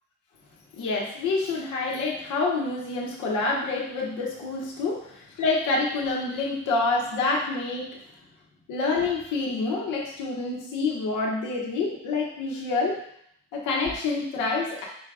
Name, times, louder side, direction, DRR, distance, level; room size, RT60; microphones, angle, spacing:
voice 1, 0.7-8.0 8.7-13.0 13.5-14.8, left 3 dB, 85° left, -2 dB, 0.8 m, -27 dB
4.7 x 4.2 x 2.4 m, 0.70 s
cardioid pair, 90°, 30 cm